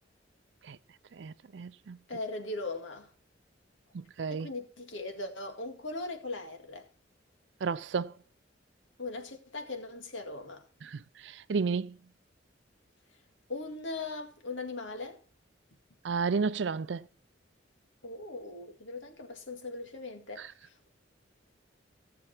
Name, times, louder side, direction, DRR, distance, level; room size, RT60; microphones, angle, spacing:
voice 1, 1.1-2.0 3.9-4.5 7.6-8.1 10.8-12.0 16.0-17.1 20.4-20.5, right 5 dB, 65° right, 0.4 m, -32 dB
voice 2, 2.1-3.1 4.3-6.9 9.0-10.6 13.5-15.2 18.0-20.9, left 2 dB, 85° left, 2.0 m, -39 dB
16.5 x 7.0 x 4.3 m
head